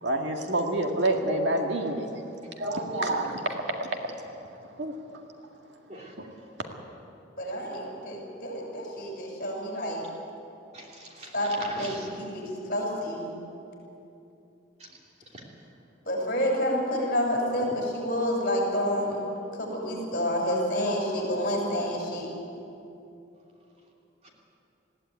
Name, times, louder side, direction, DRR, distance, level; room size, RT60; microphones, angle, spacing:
voice 1, 0.0-2.2 2.6-4.1 4.8-4.9 6.2-6.3, right 1 dB, 70° right, 2 dB, 2.0 m, -28 dB
voice 2, 5.9-6.3 10.7-12.2 14.8-15.0 15.3-15.4 24.2-24.3, right 1 dB, 35° right, -1 dB, 3.0 m, -42 dB
voice 3, 7.4-10.0 11.3-12.4 12.7-13.3 16.0-19.2 19.6-22.3, equal, 45° left, -1 dB, 6.7 m, -29 dB
20.5 x 15.5 x 9.3 m, 2.8 s
head